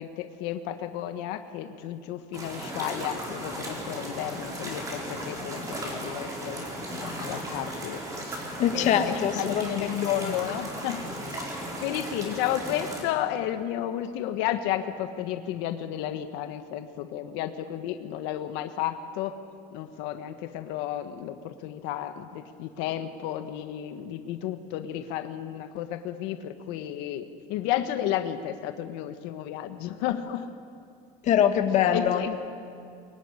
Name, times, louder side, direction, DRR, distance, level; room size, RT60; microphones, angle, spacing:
voice 1, 0.0-6.7 7.0-8.4 8.7-19.4 19.7-30.5 31.9-32.4, left 11 dB, 80° left, 8 dB, 1.5 m, -32 dB
sound 1, 2.3-13.0, right 1 dB, 20° right, 4.4 m, -36 dB
voice 2, 8.6-9.9 10.2-10.3 31.2-32.2, left 9 dB, 45° left, 6 dB, 1.7 m, -23 dB
23.0 x 22.5 x 10.0 m, 2.3 s
cardioid pair, 170°, 18 cm